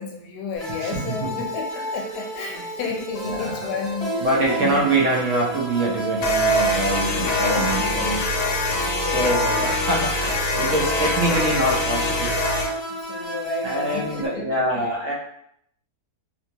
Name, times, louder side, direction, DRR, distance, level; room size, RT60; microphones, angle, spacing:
voice 1, 0.0-4.9 7.2-7.7 8.8-9.3 9.5-10.1 10.4-10.7 12.9-14.9, left 5 dB, 85° left, 3 dB, 1.1 m, -33 dB
sound 1, 0.6-14.3, right 2 dB, 30° left, 0.7 m, -30 dB
voice 2, 0.8-1.3 3.2-3.5 4.1-8.4 9.0-12.4 13.6-15.1, right 2 dB, 65° right, -3 dB, 0.9 m, -24 dB
sound 2, 6.2-12.7, left 2 dB, 70° left, 0.9 m, -24 dB
2.7 x 2.6 x 2.7 m, 0.73 s
omnidirectional pair, 1.7 m